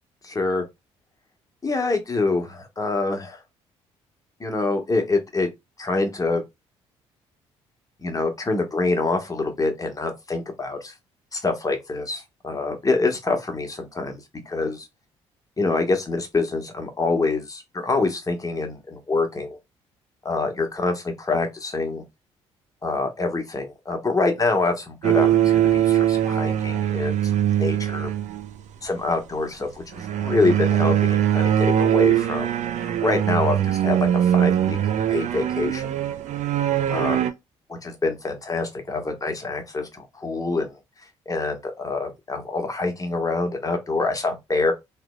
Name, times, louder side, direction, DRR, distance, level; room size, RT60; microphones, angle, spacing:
voice 1, 0.2-0.6 1.6-3.4 4.4-5.5 5.8-6.4 8.0-10.9 11.3-14.2 14.5-14.9 15.6-19.6 20.2-22.0 22.8-28.1 28.8-32.5 32.8-34.8 35.1-35.9 36.9-37.2 37.7-40.7 41.3-44.7, left 3 dB, 25° left, 1.3 m, -26 dB
sound 1, 25.0-28.6 29.9-37.3, right 10 dB, 55° right, 0.6 m, -21 dB
3.2 x 3.1 x 2.3 m
hypercardioid pair, 50°, 15 cm